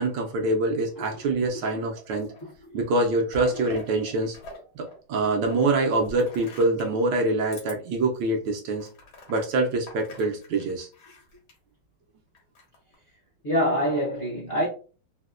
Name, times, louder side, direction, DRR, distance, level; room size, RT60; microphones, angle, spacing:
voice 1, 0.0-2.3 2.7-4.4 4.8-8.9 9.3-10.9, right 2 dB, 70° right, 1.2 m, -25 dB
sound 1, 1.9-2.6 2.9-4.6 4.8-7.0 7.5-7.7 8.2-8.3 8.8-11.6 12.3-12.9, left 1 dB, 85° left, 2.0 m, -44 dB
voice 2, 2.4-2.8 13.4-14.7, equal, 45° left, 0.8 m, -26 dB
4.0 x 2.1 x 2.4 m
omnidirectional pair, 2.2 m